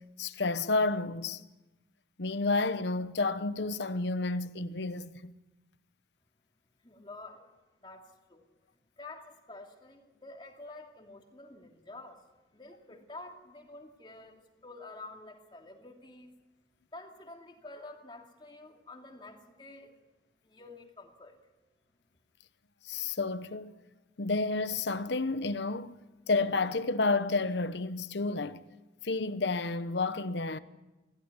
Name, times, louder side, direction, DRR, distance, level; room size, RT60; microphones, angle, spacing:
voice 1, 0.2-1.4 2.2-5.3 22.8-23.7 24.2-26.0 26.3-28.6 29.0-30.6, left 3 dB, 80° left, 1.0 m, -30 dB
voice 2, 6.8-7.5 7.8-8.5 9.0-12.2 12.5-16.3 16.9-19.9 20.4-21.4, left 2 dB, 25° left, 2.5 m, -49 dB
21.0 x 16.0 x 9.7 m
head